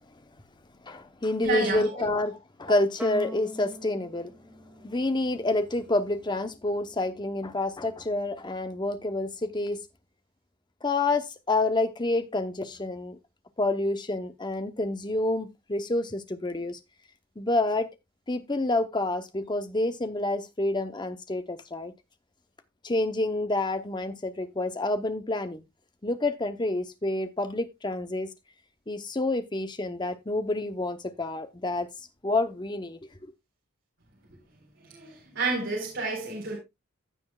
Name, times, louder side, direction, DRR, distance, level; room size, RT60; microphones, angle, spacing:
voice 1, 0.8-4.3 4.8-9.8 10.8-13.2 13.6-16.8 17.4-17.9 18.3-21.9 22.8-25.6 26.0-28.3 28.9-31.9 32.2-33.0, left 2 dB, 20° left, 0.8 m, -28 dB
voice 2, 1.4-1.9 34.9-36.6, right 3 dB, 60° right, 4.2 m, -30 dB
sound 1, 3.0-5.6, equal, 5° right, 1.8 m, -42 dB
15.5 x 7.0 x 2.3 m
head